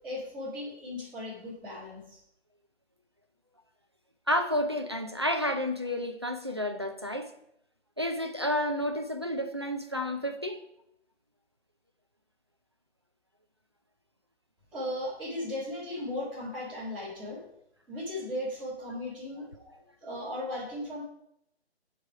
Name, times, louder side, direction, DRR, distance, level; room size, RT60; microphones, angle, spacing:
voice 1, 0.0-2.2 14.7-17.4 17.9-19.5 20.0-21.0, left 1 dB, 5° right, -12 dB, 2.0 m, -36 dB
voice 2, 4.3-7.3 8.0-10.6, left 1 dB, 25° right, 6 dB, 0.5 m, -30 dB
12.5 x 4.8 x 4.7 m, 0.76 s
figure-of-eight pair, 170°, 34 cm